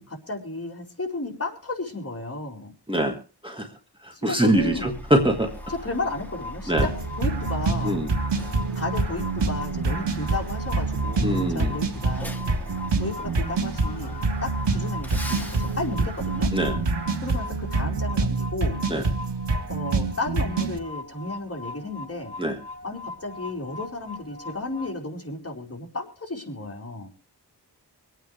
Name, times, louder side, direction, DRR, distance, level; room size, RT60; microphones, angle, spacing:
voice 1, 0.1-2.7 4.1-4.9 5.7-6.7 7.2-8.0 8.7-12.4 12.7-16.5 17.2-18.8 19.7-22.3 22.8-27.1, left 2 dB, 35° left, 0 dB, 4.4 m, -33 dB
voice 2, 2.9-3.2 3.4-3.7 4.0-5.5 6.7-6.9 7.8-8.1 11.2-11.8 16.5-16.8 18.9-19.1 22.4-22.6, right 1 dB, 10° right, 2 dB, 1.8 m, -23 dB
Truck, 4.6-17.7, equal, 5° left, 2.8 m, -40 dB
sound 1, 5.4-24.9, left 3 dB, 75° left, 2.5 m, -40 dB
sound 2, 6.8-20.8, right 3 dB, 85° right, 1.6 m, -26 dB
25.0 x 9.2 x 3.3 m, 0.35 s
wide cardioid pair, 70°, 41 cm